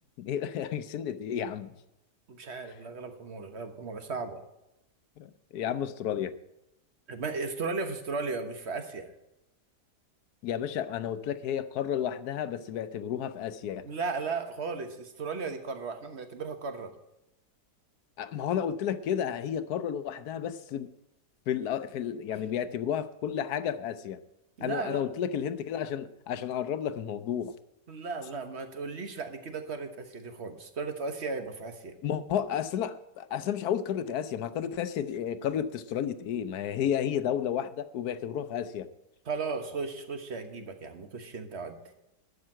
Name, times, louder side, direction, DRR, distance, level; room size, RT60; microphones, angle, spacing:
voice 1, 0.2-1.7 5.2-6.3 10.4-13.8 18.2-20.9 21.5-24.2 24.6-27.5 32.0-38.9, left 9 dB, 70° left, 13 dB, 1.2 m, -32 dB
voice 2, 2.3-4.4 7.1-9.1 13.8-16.9 24.6-25.0 27.9-31.9 39.2-41.8, right 4 dB, 45° right, 7 dB, 1.4 m, -35 dB
12.0 x 6.4 x 8.8 m, 0.88 s
omnidirectional pair, 1.8 m